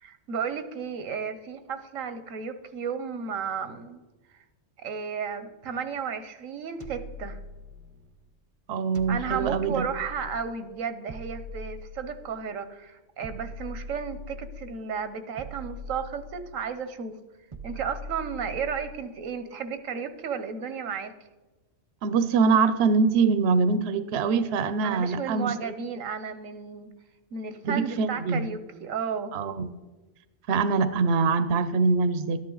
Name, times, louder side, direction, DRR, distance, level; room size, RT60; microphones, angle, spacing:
voice 1, 0.0-4.0 4.3-4.4 4.8-7.4 9.1-17.2 17.6-21.1 24.8-26.9 27.3-29.4, right 6 dB, 90° right, 10 dB, 1.2 m, -33 dB
sound 1, 6.8-8.1 8.9-10.6 11.1-12.5 13.2-14.8 15.4-16.8 17.5-19.1, left 1 dB, 35° right, 0.6 m, -41 dB
voice 2, 8.7-9.9 22.0-25.7 27.6-28.5 29.3-29.7 30.5-32.4, right 4 dB, 60° right, 12 dB, 0.9 m, -24 dB
13.0 x 10.5 x 3.9 m, 1.1 s
omnidirectional pair, 1.3 m